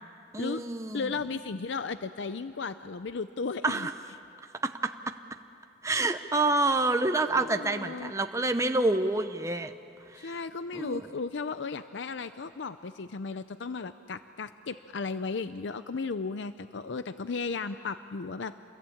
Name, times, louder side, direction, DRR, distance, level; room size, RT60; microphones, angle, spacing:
voice 1, 0.3-1.1 3.6-3.9 4.6-5.1 5.8-9.7 10.1-10.3 10.7-11.1, right 2 dB, 15° right, 7 dB, 0.7 m, -28 dB
voice 2, 0.9-3.9 7.3-8.1 10.2-18.6, left 4 dB, 75° left, 12 dB, 0.6 m, -35 dB
28.0 x 22.0 x 8.6 m, 2.6 s
head